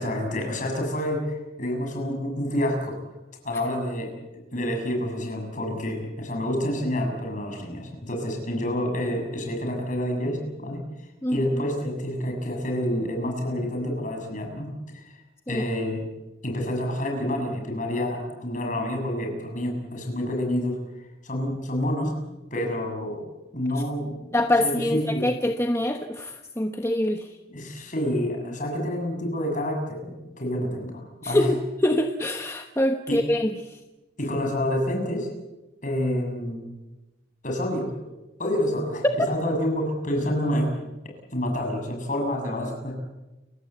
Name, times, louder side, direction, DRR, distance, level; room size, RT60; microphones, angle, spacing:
voice 1, 0.0-3.0 3.4-4.1 4.5-10.9 11.3-15.1 15.5-16.1 16.4-20.8 21.2-22.2 22.5-25.3 27.5-31.5 33.1-33.2 34.2-35.3 35.8-36.6 37.4-37.9 38.4-43.0, left 1 dB, 45° left, 2 dB, 7.1 m, -28 dB
voice 2, 11.2-11.7 15.5-15.6 24.3-27.3 31.2-33.8, left 1 dB, 15° left, 5 dB, 1.1 m, -25 dB
29.5 x 16.5 x 8.2 m, 1.0 s
head